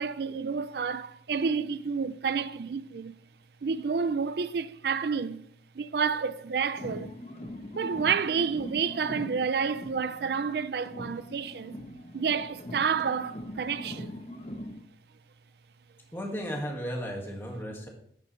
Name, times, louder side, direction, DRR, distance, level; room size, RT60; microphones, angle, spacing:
voice 1, 0.0-3.1 3.6-5.4 5.8-7.1 7.7-11.8 12.1-14.1, right 6 dB, 65° right, 0.4 m, -29 dB
sound 1, 6.7-10.6 10.8-14.8, left 1 dB, 40° left, 0.9 m, -42 dB
voice 2, 16.1-17.9, equal, 15° left, 1.9 m, -34 dB
10.5 x 8.6 x 3.2 m
head